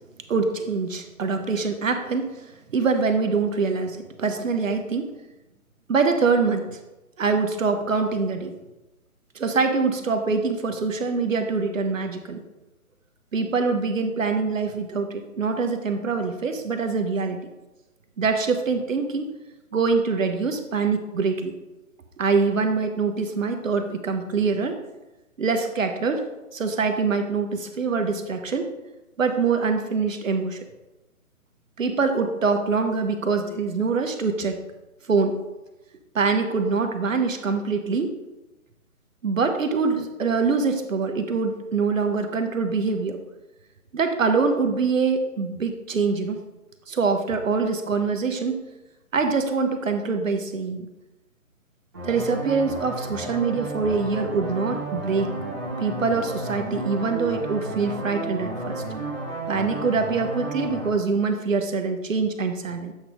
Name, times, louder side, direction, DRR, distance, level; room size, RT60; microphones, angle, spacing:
voice 1, 0.3-2.4 2.7-5.1 5.9-6.8 7.2-8.5 9.3-12.4 13.3-17.5 18.2-19.3 19.7-21.5 22.2-24.8 25.4-26.2 26.5-28.7 29.2-30.6 31.8-34.6 35.1-35.4 36.1-38.2 39.2-43.2 43.9-46.4 46.9-48.6 49.1-50.9 52.0-55.3 55.8-58.8 59.5-62.9, right 4 dB, 65° right, 6 dB, 0.9 m, -24 dB
sound 1, 51.9-60.9, right 2 dB, 15° right, 1.2 m, -32 dB
8.0 x 3.2 x 5.0 m, 1.0 s
hypercardioid pair, 180°, 42 cm